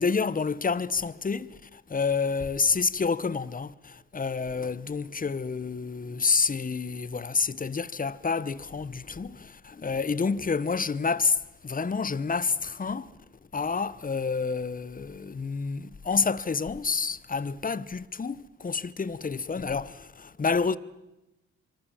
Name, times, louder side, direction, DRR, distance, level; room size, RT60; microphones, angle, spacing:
voice 1, 0.0-13.1 13.5-20.8, left 5 dB, 25° left, 1.1 m, -29 dB
25.0 x 24.5 x 7.3 m
hypercardioid pair, 45°, 33 cm